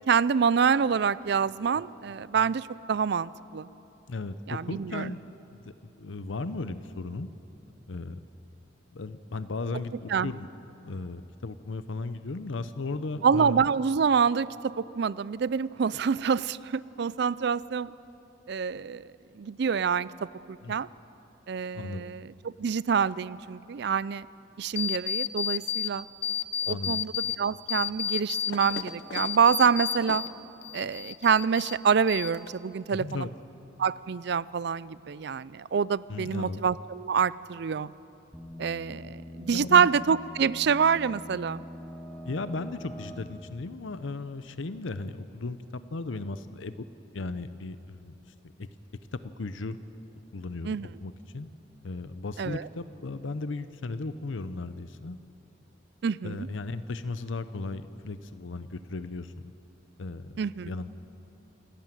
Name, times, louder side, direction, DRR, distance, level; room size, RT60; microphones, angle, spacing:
voice 1, 0.0-3.7 4.5-5.1 10.1-10.3 13.2-17.9 18.5-19.1 19.3-20.1 20.5-20.9 21.5-24.3 24.6-26.1 26.7-30.2 30.7-33.3 33.8-37.9 38.6-41.6 50.6-50.9 52.4-52.7 56.0-56.5 60.4-60.7, right 6 dB, 60° right, 19 dB, 0.4 m, -26 dB
voice 2, 4.1-5.2 5.6-7.3 7.9-8.2 8.9-10.5 10.8-13.7 20.6-20.8 21.7-22.1 26.7-27.0 32.9-33.3 36.1-36.6 39.5-39.9 42.2-46.8 47.1-48.1 48.6-48.7 49.1-49.8 50.3-51.5 51.8-55.2 56.2-59.3 60.0-60.4 60.6-60.9, left 3 dB, 85° left, 12 dB, 0.7 m, -36 dB
sound 1, 24.8-25.9 26.2-27.4 27.7-30.3 30.6-31.8 32.1-32.7, left 8 dB, 60° left, 0.9 m, -31 dB
sound 2, 38.3-44.9, left 1 dB, 5° left, 1.4 m, -44 dB
28.0 x 12.0 x 9.1 m, 2.9 s
head